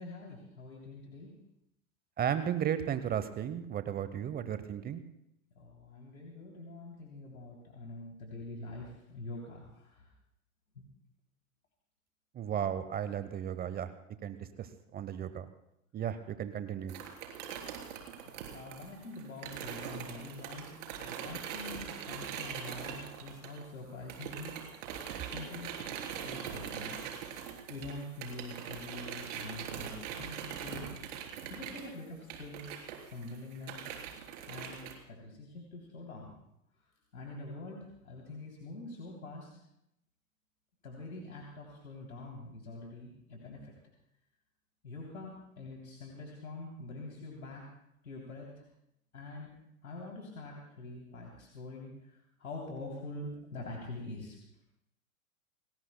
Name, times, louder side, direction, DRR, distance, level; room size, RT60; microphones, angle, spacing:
voice 1, 0.0-1.3 5.5-10.1 10.7-10.8 18.3-20.7 21.0-24.6 25.2-25.7 26.1-27.0 27.7-30.9 31.5-33.9 34.5-34.8 35.1-36.4 37.1-39.5 40.8-43.7 44.8-47.6 48.0-48.5 49.1-49.5 49.8-54.4, left 2 dB, 80° left, -1 dB, 3.2 m, -45 dB
voice 2, 2.2-5.0 12.3-13.9 14.2-15.5 15.9-17.0, right 9 dB, 20° right, 12 dB, 0.9 m, -34 dB
sound 1, 16.9-23.8 24.1-34.9, right 8 dB, 60° right, 3.7 m, -42 dB
28.5 x 19.0 x 2.2 m, 0.78 s
figure-of-eight pair, 95°, 42 cm